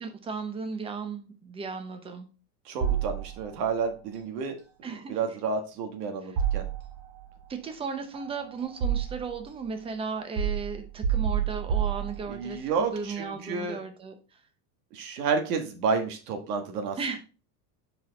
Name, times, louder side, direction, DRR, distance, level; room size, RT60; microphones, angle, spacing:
voice 1, 0.0-2.3 4.8-5.2 7.5-14.1 17.0-17.2, right 5 dB, 10° right, 7 dB, 0.6 m, -35 dB
voice 2, 2.6-4.6 5.1-6.7 12.3-13.8 14.9-17.0, right 5 dB, 80° right, 5 dB, 1.6 m, -30 dB
sound 1, 2.8-3.7 6.4-7.2 8.1-9.5 10.4-12.6, right 8 dB, 55° right, 1.8 m, -29 dB
5.4 x 4.5 x 3.9 m, 0.34 s
supercardioid pair, 155°, 46 cm